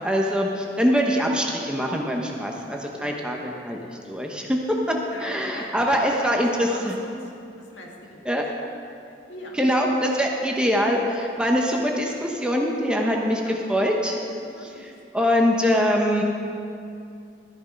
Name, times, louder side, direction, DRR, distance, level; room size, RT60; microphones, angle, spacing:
voice 1, 0.0-3.8 4.1-4.6 4.9-7.0 8.2-8.4 9.5-14.2 14.6-16.2, equal, 5° right, 0 dB, 0.9 m, -23 dB
voice 2, 5.1-6.3 6.6-7.3 7.6-8.3 9.3-9.6 13.0-13.6 14.2-14.8, left 1 dB, 80° left, -1 dB, 2.0 m, -41 dB
13.0 x 9.4 x 5.2 m, 2.5 s
head